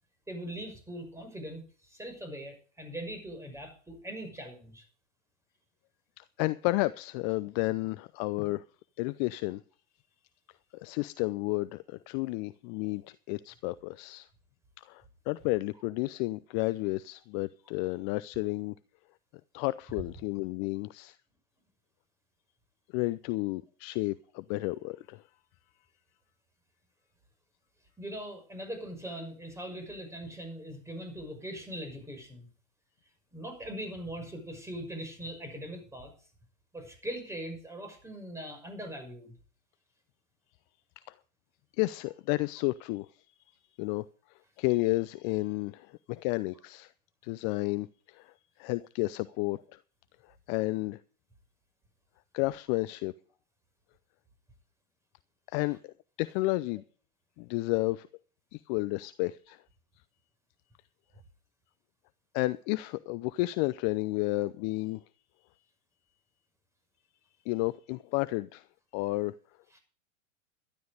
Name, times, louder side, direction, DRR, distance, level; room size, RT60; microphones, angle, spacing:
voice 1, 0.3-4.8 28.0-32.5 33.3-36.1 36.7-39.4 69.7-69.8, right 1 dB, 5° right, 6.0 m, -41 dB
voice 2, 6.2-8.6 9.0-9.6 10.7-14.3 14.8-18.7 19.5-21.2 22.9-25.2 41.8-43.1 43.8-44.1 44.6-46.9 47.2-48.3 48.6-49.8 50.2-51.0 52.3-53.1 55.5-56.8 57.4-58.1 58.5-59.6 62.3-65.0 67.5-68.6 68.9-69.3, left 21 dB, 35° left, 0.6 m, -31 dB
12.5 x 12.0 x 5.2 m
hypercardioid pair, 105°, 41 cm